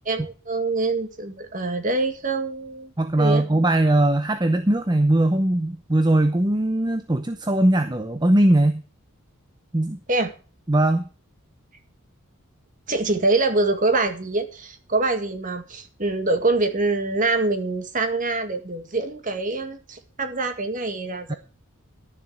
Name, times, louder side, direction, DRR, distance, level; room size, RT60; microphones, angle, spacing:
voice 1, 0.1-3.4 10.1-10.3 12.9-21.4, right 3 dB, 35° right, 7 dB, 1.9 m, -25 dB
voice 2, 3.0-8.8 9.7-10.0 10.7-11.1 21.3-21.4, right 1 dB, 20° right, 8 dB, 0.7 m, -20 dB
12.0 x 7.2 x 7.9 m, 0.36 s
head